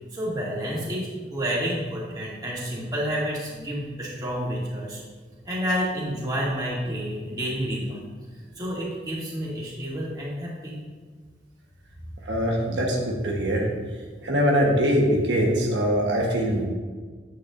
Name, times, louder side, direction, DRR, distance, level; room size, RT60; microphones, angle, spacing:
voice 1, 0.1-5.0 5.4-8.0 8.6-10.8, equal, 25° right, -6 dB, 2.4 m, -29 dB
voice 2, 12.2-13.7 14.2-16.7, equal, 80° right, -1 dB, 1.2 m, -22 dB
9.7 x 8.5 x 2.6 m, 1.5 s
head